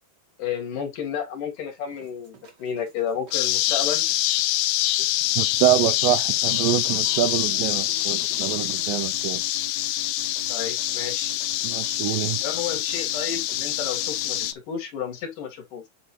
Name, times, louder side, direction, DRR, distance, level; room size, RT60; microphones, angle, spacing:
voice 1, 0.4-4.1 10.5-11.3 12.4-15.9, left 7 dB, 60° left, 3.0 m, -31 dB
sound 1, 1.9-14.5, right 5 dB, 60° right, 1.1 m, -46 dB
sound 2, 3.3-14.5, left 15 dB, 90° left, 2.6 m, -25 dB
voice 2, 5.4-9.4 11.6-12.4, right 13 dB, 80° right, 2.1 m, -25 dB
9.0 x 4.0 x 3.0 m
omnidirectional pair, 4.4 m